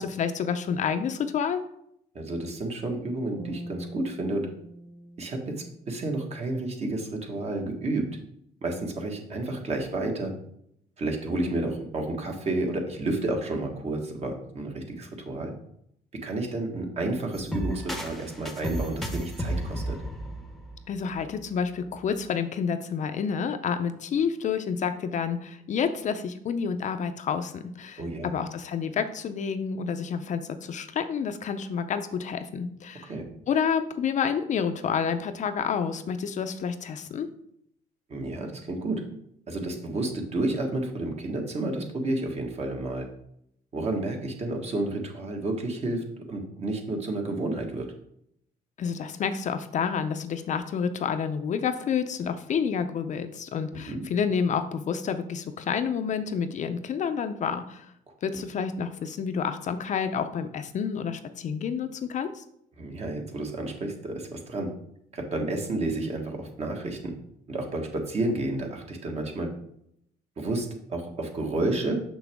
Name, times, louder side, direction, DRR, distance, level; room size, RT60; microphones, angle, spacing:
voice 1, 0.0-1.6 20.9-33.1 33.5-37.3 48.8-57.9 58.2-62.4, left 6 dB, 45° left, 8 dB, 0.5 m, -29 dB
voice 2, 2.1-4.5 5.2-8.0 8.6-10.3 11.0-15.5 16.2-20.0 28.0-28.3 33.0-33.3 38.1-39.0 39.5-43.1 43.7-47.9 53.7-54.0 58.1-58.2 62.8-64.7 65.1-67.1 67.5-69.5 70.4-72.0, right 2 dB, 40° right, 3 dB, 1.4 m, -31 dB
sound 1, 3.4-6.7, right 1 dB, 70° right, 1.9 m, -43 dB
sound 2, 17.3-21.3, right 1 dB, ahead, 0.9 m, -33 dB
6.2 x 6.0 x 3.5 m, 0.72 s
cardioid pair, 110°, 17 cm